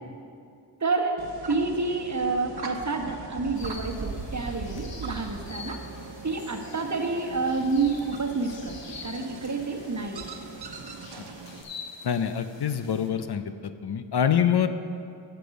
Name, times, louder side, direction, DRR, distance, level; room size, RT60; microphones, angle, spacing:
voice 1, 0.8-1.2 1.5-5.8 6.2-10.3, right 3 dB, 40° right, 4 dB, 1.2 m, -29 dB
sound 1, 1.2-11.6, right 4 dB, 60° right, 1.0 m, -40 dB
sound 2, 3.5-13.1, left 5 dB, 85° left, 1.1 m, -46 dB
voice 2, 12.0-14.7, left 8 dB, 65° left, 10 dB, 0.6 m, -25 dB
13.0 x 6.9 x 5.2 m, 2.4 s
cardioid pair, 45°, 43 cm